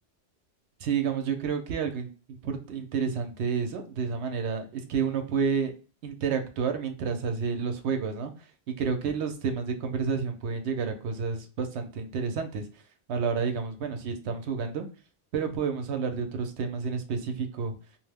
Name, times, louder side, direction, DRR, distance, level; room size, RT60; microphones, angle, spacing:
voice 1, 0.8-5.7 6.0-8.3 8.8-12.6 13.1-14.8 15.3-17.7, right 6 dB, 75° right, 6 dB, 0.9 m, -30 dB
2.5 x 2.0 x 3.4 m, 0.36 s
omnidirectional pair, 1.2 m